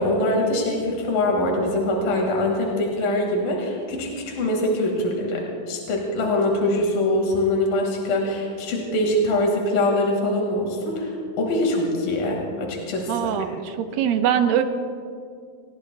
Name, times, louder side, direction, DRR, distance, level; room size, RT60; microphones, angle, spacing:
voice 1, 0.0-11.1 11.4-13.3, left 1 dB, 75° left, 0 dB, 3.7 m, -23 dB
voice 2, 13.1-14.6, right 9 dB, 85° right, 7 dB, 2.7 m, -22 dB
29.5 x 19.0 x 2.3 m, 2.3 s
omnidirectional pair, 4.0 m